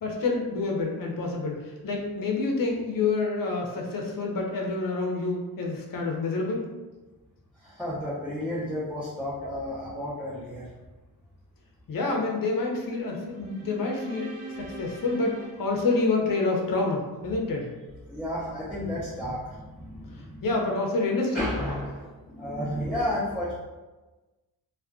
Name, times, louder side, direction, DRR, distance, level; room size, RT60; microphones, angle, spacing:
voice 1, 0.0-6.6 11.9-17.7 20.4-21.4, left 3 dB, 60° left, 0 dB, 0.6 m, -28 dB
voice 2, 7.6-10.7 18.1-20.4 21.3-23.5, left 1 dB, 5° right, -11 dB, 0.6 m, -32 dB
sound 1, 13.3-16.7, right 2 dB, 45° right, 0.8 m, -43 dB
2.4 x 2.3 x 2.3 m, 1.2 s
cardioid pair, 85°, 38 cm